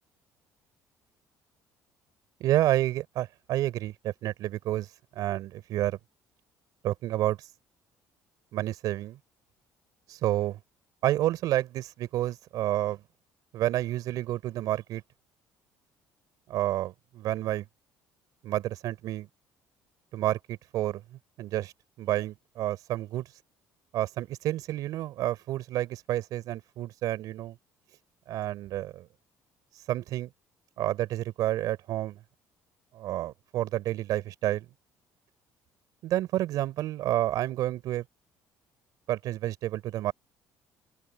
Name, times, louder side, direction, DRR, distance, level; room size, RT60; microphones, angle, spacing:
voice 1, 2.4-6.0 6.8-7.5 8.5-9.2 10.1-10.6 11.0-13.0 13.5-15.0 16.5-17.7 18.4-19.3 20.1-21.0 21.4-21.7 22.0-23.3 23.9-27.6 28.3-29.1 29.9-30.3 30.8-32.2 32.9-34.7 36.0-38.0 39.1-40.1, right 14 dB, 70° right, 4.3 m, -29 dB
open air
cardioid pair, 105°, 7 cm